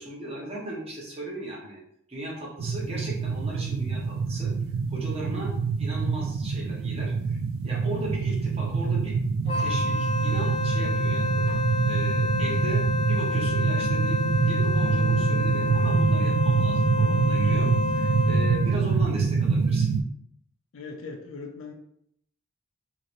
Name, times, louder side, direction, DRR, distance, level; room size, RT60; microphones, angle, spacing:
voice 1, 0.0-1.8 2.1-4.5 4.9-5.5 5.8-9.1 9.6-11.5 11.8-12.8 13.1-19.9, right 1 dB, 30° right, -4 dB, 0.8 m, -37 dB
sound 1, 2.6-20.0, right 5 dB, 80° right, 0.3 m, -25 dB
Wind instrument woodwind instrument, 9.5-18.8, left 3 dB, 25° left, 0.5 m, -29 dB
voice 2, 20.7-21.7, left 4 dB, 75° left, 3 dB, 0.5 m, -39 dB
2.9 x 2.9 x 2.6 m, 0.70 s
head